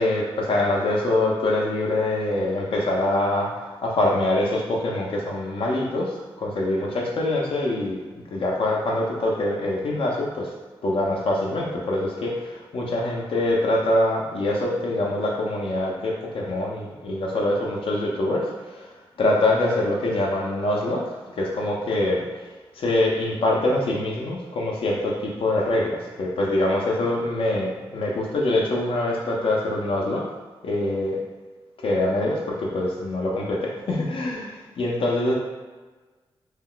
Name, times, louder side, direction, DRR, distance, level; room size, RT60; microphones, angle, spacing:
voice 1, 0.0-8.0 8.3-10.5 10.8-18.9 19.2-22.2 22.8-30.2 30.6-31.2 31.8-35.3, left 1 dB, 65° left, -2 dB, 0.5 m, -24 dB
2.3 x 2.2 x 3.7 m, 1.3 s
wide cardioid pair, 100°, 10 cm